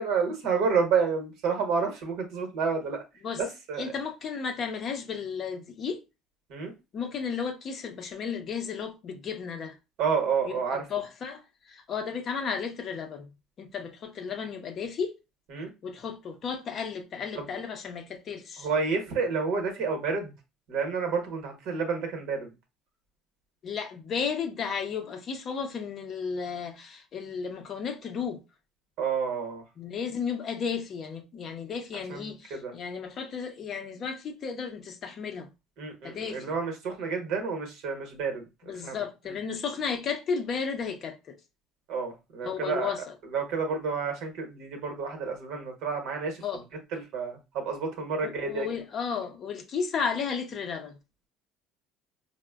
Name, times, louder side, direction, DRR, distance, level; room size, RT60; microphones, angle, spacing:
voice 1, 0.0-3.0 3.4-3.9 6.5-6.7 10.0-10.9 15.5-15.7 17.3-17.5 18.6-20.3 20.7-22.5 29.0-29.6 32.1-32.7 35.8-38.4 38.8-39.0 39.3-39.4 41.9-42.9 43.3-46.6 46.9-48.7, right 5 dB, 65° right, 1.0 m, -30 dB
voice 2, 3.8-6.0 6.9-9.7 10.5-10.6 10.9-13.3 13.6-15.2 15.8-18.7 23.6-28.4 29.8-35.5 36.0-36.5 38.7-41.4 42.4-43.1 46.4-46.6 48.2-51.0, left 6 dB, 35° left, 0.5 m, -33 dB
4.6 x 2.0 x 2.3 m
cardioid pair, 155°, 0 cm